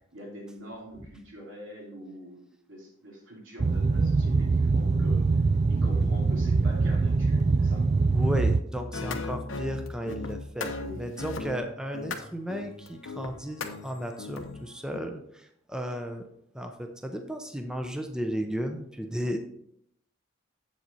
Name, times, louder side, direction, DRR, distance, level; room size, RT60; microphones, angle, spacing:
voice 1, 0.1-5.2 5.7-7.9 10.8-11.2, equal, 75° right, -2 dB, 2.9 m, -44 dB
Boat Water vehicle, 3.6-8.6, right 3 dB, 35° right, 0.3 m, -23 dB
voice 2, 5.8-6.2 8.1-16.3 16.5-19.4, equal, 5° right, 5 dB, 0.7 m, -34 dB
sound 1, 8.7-15.0, left 3 dB, 80° left, 0.9 m, -37 dB
8.0 x 7.4 x 4.1 m, 0.73 s
head